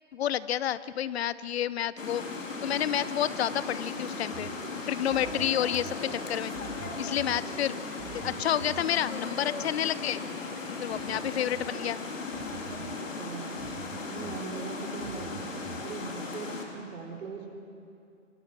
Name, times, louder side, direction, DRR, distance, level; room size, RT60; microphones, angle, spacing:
voice 1, 0.1-4.5 4.9-6.5 7.0-7.8 8.1-10.2 10.8-12.0, left 11 dB, 55° left, 17 dB, 0.7 m, -30 dB
sound 1, 2.0-16.7, left 3 dB, 90° left, 3.6 m, -37 dB
sound 2, 4.3-15.9, right 11 dB, 30° right, 0.8 m, -47 dB
voice 2, 12.7-13.6 14.1-17.5, right 6 dB, 75° right, 1 dB, 4.2 m, -41 dB
26.5 x 20.5 x 6.2 m, 2.5 s
hypercardioid pair, 140°, 38 cm